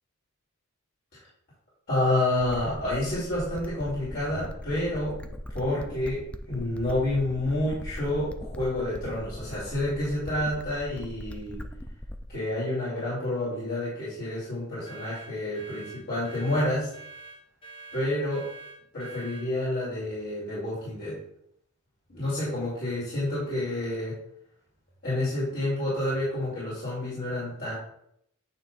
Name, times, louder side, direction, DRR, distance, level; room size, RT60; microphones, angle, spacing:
voice 1, 1.9-5.2 5.5-11.6 12.3-16.9 17.9-18.5 18.9-21.2 22.1-24.2 25.0-27.7, left 1 dB, 55° left, -9 dB, 2.6 m, -29 dB
sound 1, 2.5-12.4, equal, 5° left, 0.3 m, -40 dB
sound 2, 14.8-19.5, right 3 dB, 25° left, 1.2 m, -45 dB
8.8 x 3.0 x 4.1 m, 0.72 s
head